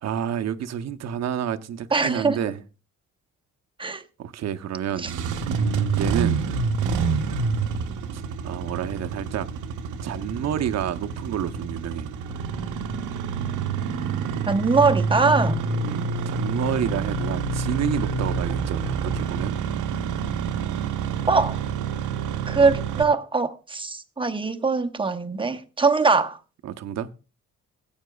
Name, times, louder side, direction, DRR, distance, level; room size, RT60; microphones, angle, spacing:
voice 1, 0.0-2.6 4.2-5.1 5.5-6.4 8.1-9.5 10.0-12.1 15.8-19.6 26.6-27.1, right 9 dB, 60° right, 0.8 m, -29 dB
voice 2, 1.9-2.4 3.8-4.0 14.5-15.6 21.3-21.6 22.5-26.4, right 4 dB, 15° right, 0.8 m, -22 dB
Engine starting, 4.9-23.0, right 5 dB, 85° right, 0.9 m, -27 dB
16.0 x 8.8 x 2.3 m
cardioid pair, 90°, 30 cm